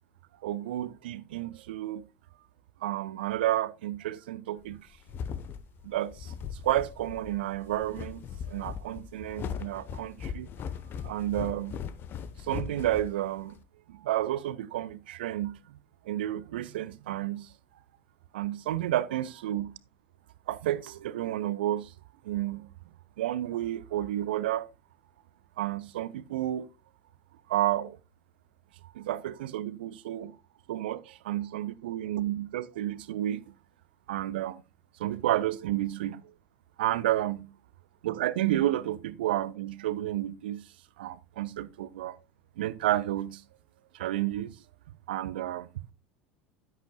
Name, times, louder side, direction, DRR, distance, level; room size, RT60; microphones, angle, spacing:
voice 1, 0.4-2.0 2.8-4.8 5.8-6.3 6.6-10.5 11.0-11.8 12.5-13.6 13.9-15.5 16.1-17.5 18.3-19.7 20.5-21.9 22.3-22.6 23.2-24.7 25.6-26.7 27.5-28.0 29.0-30.3 30.7-33.4 34.1-34.6 35.0-36.2 36.8-37.5 38.0-40.6 41.0-42.2 42.6-43.4 43.9-44.5 45.1-45.7, right 13 dB, 65° right, 0.6 m, -31 dB
sound 1, 4.7-13.6, left 7 dB, 35° left, 1.0 m, -39 dB
11.5 x 10.5 x 2.3 m
figure-of-eight pair, 75°, 6 cm